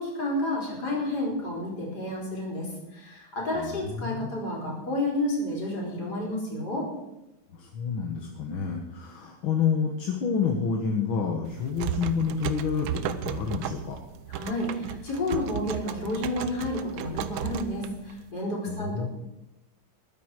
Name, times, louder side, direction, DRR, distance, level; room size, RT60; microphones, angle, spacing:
voice 1, 0.0-6.9 14.3-19.1, left 1 dB, 50° left, -3 dB, 4.7 m, -30 dB
voice 2, 3.6-4.3 7.5-14.0 18.7-19.1, left 6 dB, 75° left, 1 dB, 2.1 m, -29 dB
sound 1, 11.5-18.3, right 10 dB, 80° right, 1.5 m, -35 dB
21.0 x 9.4 x 4.8 m, 0.94 s
omnidirectional pair, 2.3 m